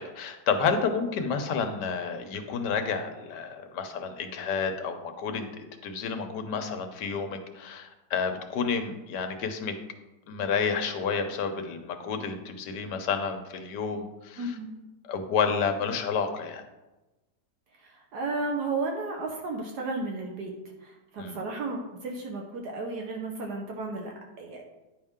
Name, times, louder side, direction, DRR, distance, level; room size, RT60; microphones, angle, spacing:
voice 1, 0.0-9.7 10.3-14.5 15.1-16.6 21.2-21.4, left 5 dB, 75° left, 6 dB, 1.4 m, -30 dB
voice 2, 14.4-14.7 17.8-20.5 20.8-24.6, right 3 dB, 70° right, 1 dB, 1.4 m, -33 dB
9.9 x 5.4 x 3.6 m, 1.0 s
omnidirectional pair, 1.9 m